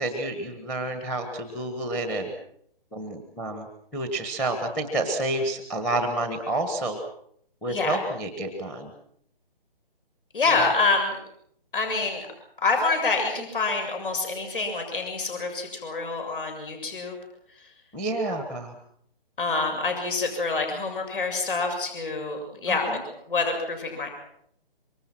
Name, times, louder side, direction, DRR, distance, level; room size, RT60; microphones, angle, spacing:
voice 1, 0.0-2.3 2.9-3.7 3.9-7.0 7.6-8.9 10.6-10.7 17.9-18.7 22.7-23.0, right 2 dB, 5° left, 6 dB, 1.4 m, -29 dB
voice 2, 7.7-8.0 10.3-11.2 11.7-12.3 12.6-17.2 19.4-23.0 23.3-24.1, left 3 dB, 60° left, 3 dB, 7.2 m, -26 dB
26.0 x 24.0 x 6.1 m, 0.68 s
hypercardioid pair, 160°, 30 cm